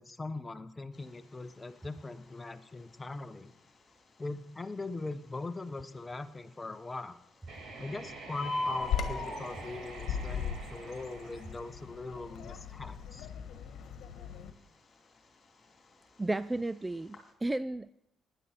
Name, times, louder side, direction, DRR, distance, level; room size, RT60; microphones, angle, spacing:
voice 1, 0.0-3.5 4.2-7.2 7.8-13.3, left 2 dB, 20° left, 10 dB, 1.0 m, -41 dB
Bird, 0.9-17.3, left 2 dB, 40° left, 3.1 m, -45 dB
sound 1, 7.4-12.4, right 3 dB, 65° right, 4.9 m, -47 dB
Bird vocalization bird call bird song, 8.8-14.5, left 8 dB, 75° left, 1.3 m, -38 dB
voice 2, 16.2-17.9, right 2 dB, 15° right, 15 dB, 0.4 m, -33 dB
15.5 x 10.5 x 4.5 m, 0.82 s
cardioid pair, 80°, 0 cm